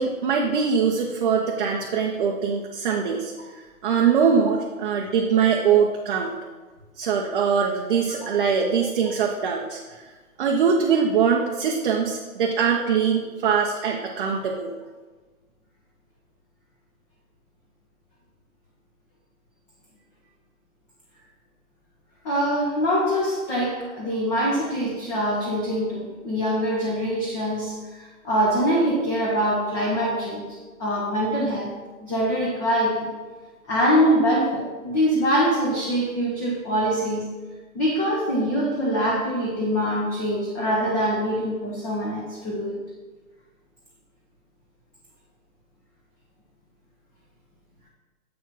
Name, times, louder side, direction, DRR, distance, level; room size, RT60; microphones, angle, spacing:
voice 1, 0.0-6.3 7.0-10.0 10.4-14.7, right 6 dB, 35° right, 0 dB, 0.8 m, -22 dB
voice 2, 22.2-30.5 30.8-31.8 32.0-33.1 33.7-37.3 37.7-42.8, equal, 15° left, -5 dB, 1.0 m, -24 dB
7.5 x 4.8 x 5.5 m, 1.3 s
hypercardioid pair, 150°, 43 cm